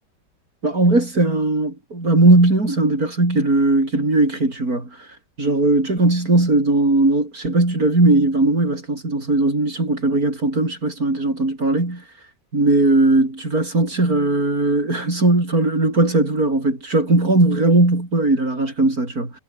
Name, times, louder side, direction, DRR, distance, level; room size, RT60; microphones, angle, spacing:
voice 1, 0.6-4.9 5.4-12.0 12.5-19.3, right 2 dB, 55° right, 6.0 m, -18 dB
omnidirectional pair, 1.9 m